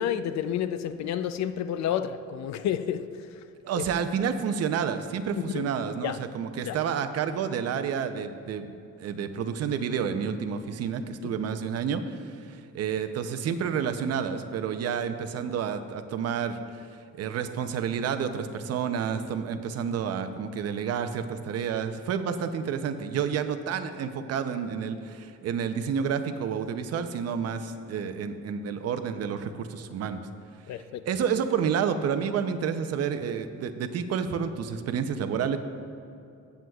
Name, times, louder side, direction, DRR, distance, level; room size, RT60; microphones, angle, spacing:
voice 1, 0.0-3.1 3.7-3.8 5.3-5.7 6.0-6.2 6.6-6.8 11.2-11.3 30.7-31.0, left 9 dB, 65° left, 0.4 m, -30 dB
voice 2, 3.6-8.7 9.0-30.2 30.7-35.6, right 7 dB, 55° right, 0.6 m, -30 dB
15.5 x 7.8 x 2.3 m
cardioid pair, 165°, 30 cm